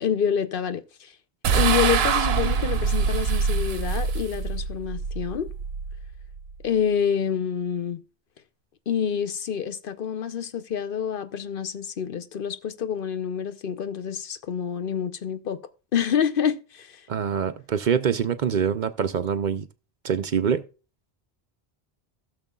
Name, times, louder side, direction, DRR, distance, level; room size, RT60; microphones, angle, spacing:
voice 1, 0.0-1.1 1.5-5.5 6.6-8.0 8.9-15.6 15.9-17.0, left 8 dB, 60° left, 0.8 m, -27 dB
sound 1, 1.4-6.8, right 6 dB, 80° right, 1.0 m, -25 dB
voice 2, 17.1-19.7 20.0-20.6, right 7 dB, 55° right, 0.6 m, -25 dB
16.5 x 6.6 x 2.3 m
omnidirectional pair, 1.0 m